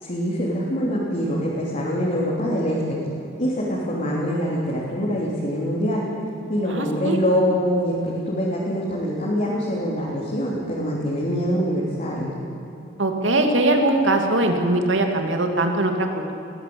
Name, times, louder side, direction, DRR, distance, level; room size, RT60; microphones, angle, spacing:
voice 1, 0.0-3.0 3.4-6.1 6.5-12.3, equal, 40° left, -5 dB, 3.3 m, -24 dB
voice 2, 6.7-7.2 13.0-16.3, right 2 dB, 80° right, 4 dB, 2.6 m, -21 dB
21.0 x 16.0 x 8.8 m, 2.8 s
head